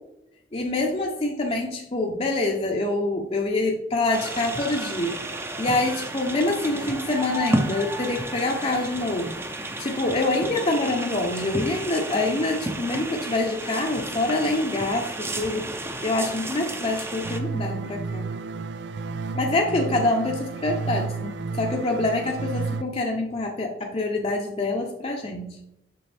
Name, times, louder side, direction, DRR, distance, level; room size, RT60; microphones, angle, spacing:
voice 1, 0.5-5.2 5.6-9.4 9.8-15.7 16.0-18.3 19.3-25.6, left 2 dB, 30° left, 0 dB, 0.6 m, -26 dB
sound 1, 4.1-17.4, right 1 dB, 15° right, 0.6 m, -32 dB
sound 2, 17.2-22.8, right 4 dB, 65° right, 0.4 m, -31 dB
6.8 x 6.3 x 3.4 m, 0.85 s
head